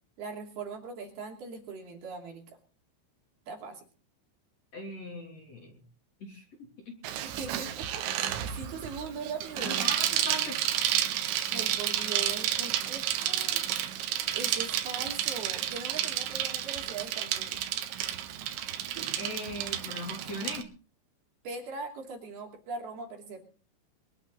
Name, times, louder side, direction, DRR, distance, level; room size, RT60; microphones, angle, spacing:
voice 1, 0.2-2.6 3.5-3.8 7.2-9.9 11.5-13.6 14.3-17.6 21.4-23.4, right 4 dB, 55° right, 1 dB, 4.4 m, -40 dB
voice 2, 4.7-5.8 6.2-7.0 9.6-10.6 19.2-20.7, left 1 dB, 35° left, 1 dB, 3.6 m, -39 dB
Bicycle, 7.0-20.6, right 11 dB, 85° right, 4.0 m, -31 dB
23.0 x 12.5 x 4.0 m, 0.39 s
omnidirectional pair, 5.9 m